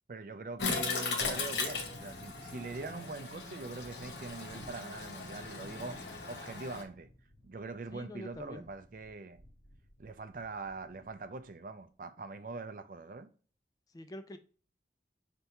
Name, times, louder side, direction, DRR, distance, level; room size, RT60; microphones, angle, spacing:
voice 1, 0.1-6.0 6.3-7.1 7.4-9.4 10.0-13.3, right 3 dB, 50° right, 0.4 m, -43 dB
Toilet flush, 0.6-6.8, left 4 dB, 85° left, 0.9 m, -38 dB
Thunderstorm, 1.2-11.4 11.7-11.8, equal, 65° left, 1.0 m, -54 dB
voice 2, 7.9-8.7 13.9-14.4, left 1 dB, 20° left, 0.3 m, -45 dB
5.3 x 3.4 x 2.9 m
head